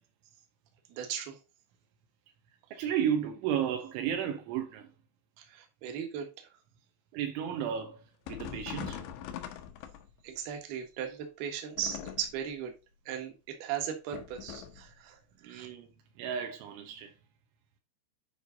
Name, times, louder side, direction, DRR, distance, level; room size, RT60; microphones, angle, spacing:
voice 1, 0.9-1.4 2.7-2.8 5.4-6.5 10.2-12.7 13.1-15.2 15.4-15.7, right 9 dB, 60° right, 3.1 m, -37 dB
voice 2, 2.7-4.9 7.1-8.0 8.3-9.0 15.4-15.9 16.2-17.1, right 9 dB, 80° right, 3.2 m, -33 dB
sound 1, 8.3-10.4 11.7-12.5 14.1-14.9, left 9 dB, 75° left, 3.0 m, -42 dB
9.7 x 5.2 x 3.9 m
omnidirectional pair, 5.6 m